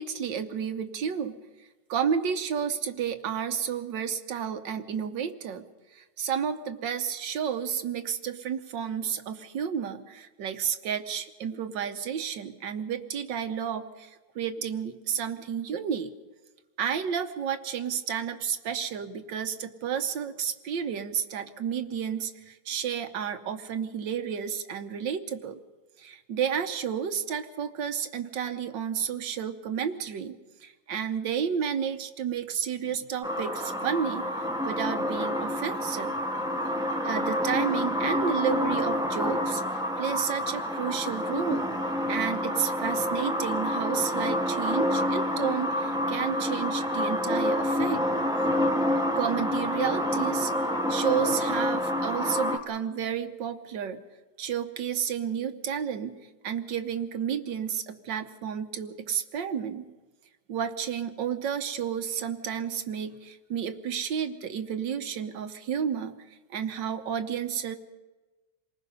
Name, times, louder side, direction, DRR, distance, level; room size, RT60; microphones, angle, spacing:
voice 1, 0.0-1.4 1.9-5.7 6.0-14.1 14.4-16.1 16.8-25.6 26.0-34.3 34.7-36.2 37.0-39.6 40.0-41.7 42.1-48.0 49.2-50.5 50.9-54.0 54.4-56.2 56.4-59.9 60.5-66.1 66.5-67.8, right 8 dB, 85° right, 8 dB, 1.7 m, -31 dB
sound 1, 33.2-52.6, left 1 dB, 5° right, 1.2 m, -28 dB
27.5 x 19.5 x 5.4 m, 1.2 s
omnidirectional pair, 1.9 m